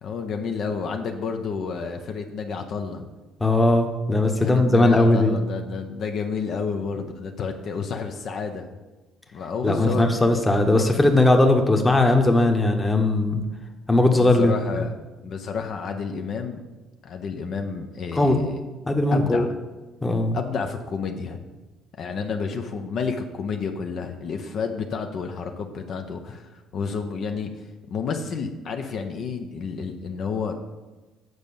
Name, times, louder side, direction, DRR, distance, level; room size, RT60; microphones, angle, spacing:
voice 1, 0.0-3.0 4.4-8.7 9.3-10.0 14.2-14.9 15.2-16.6 17.0-18.6 19.1-19.5 20.3-21.4 22.0-27.5 27.9-30.5, left 5 dB, 55° left, 4 dB, 0.8 m, -30 dB
voice 2, 3.4-5.4 9.6-13.4 13.9-14.5 18.1-18.4 18.9-19.4 20.0-20.4, left 2 dB, 15° left, 4 dB, 1.1 m, -19 dB
8.1 x 5.3 x 7.0 m, 1.2 s
cardioid pair, 125°, 0 cm